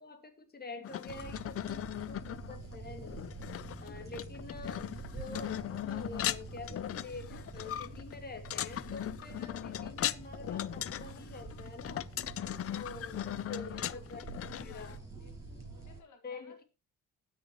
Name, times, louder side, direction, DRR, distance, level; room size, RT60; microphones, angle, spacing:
voice 1, 0.0-3.2 3.8-12.1 12.7-14.2 14.6-15.0 16.2-16.6, left 3 dB, 30° left, 6 dB, 2.4 m, -47 dB
sound 1, 0.8-15.0, left 11 dB, 50° left, 0.5 m, -38 dB
sound 2, 1.1-16.0, right 3 dB, 10° right, 7.3 m, -47 dB
voice 2, 13.3-15.3 15.7-16.6, left 5 dB, 75° left, 6 dB, 2.0 m, -61 dB
19.5 x 6.8 x 3.0 m, 0.27 s
cardioid pair, 90°, 30 cm